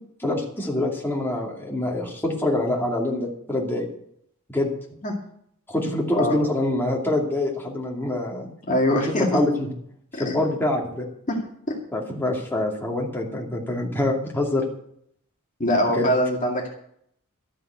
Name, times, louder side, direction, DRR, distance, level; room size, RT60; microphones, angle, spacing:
voice 1, 0.2-3.9 4.5-4.7 5.7-8.5 8.9-9.7 10.1-11.1 11.9-14.6 15.9-16.1, left 1 dB, 10° left, -2 dB, 2.5 m, -25 dB
voice 2, 8.7-9.4 10.1-10.4 11.3-11.4 11.7-11.8 15.6-16.7, left 1 dB, 35° left, 0 dB, 2.2 m, -23 dB
13.0 x 7.5 x 8.1 m, 0.69 s
head